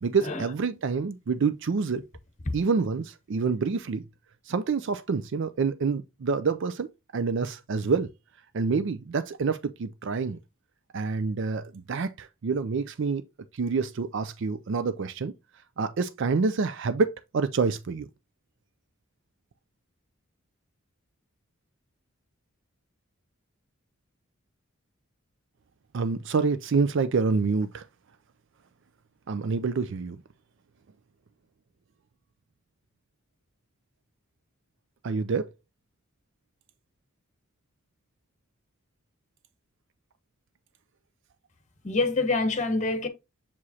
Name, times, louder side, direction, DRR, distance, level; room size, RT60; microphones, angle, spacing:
voice 1, 0.0-2.0 2.5-4.0 4.5-8.1 8.5-10.4 10.9-13.2 13.5-15.3 15.8-18.1 25.9-27.9 29.3-30.2 35.0-35.5, right 4 dB, 60° right, 0.4 m, -27 dB
voice 2, 41.8-43.1, left 3 dB, 35° left, 1.0 m, -26 dB
7.0 x 4.8 x 2.8 m
head